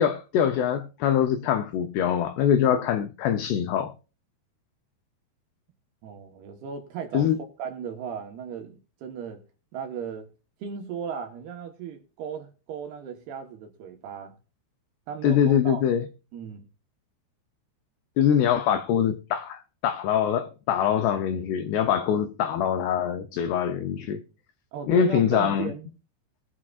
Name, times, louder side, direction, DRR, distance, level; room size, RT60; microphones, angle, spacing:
voice 1, 0.0-3.9 7.1-7.4 15.2-16.1 18.2-24.2 24.9-25.7, left 9 dB, 85° left, 2.3 m, -23 dB
voice 2, 6.0-7.3 7.6-9.4 9.7-10.3 10.6-14.4 15.1-15.8 16.3-16.6 24.7-25.9, right 7 dB, 70° right, 2.7 m, -36 dB
21.0 x 7.4 x 2.4 m
omnidirectional pair, 5.6 m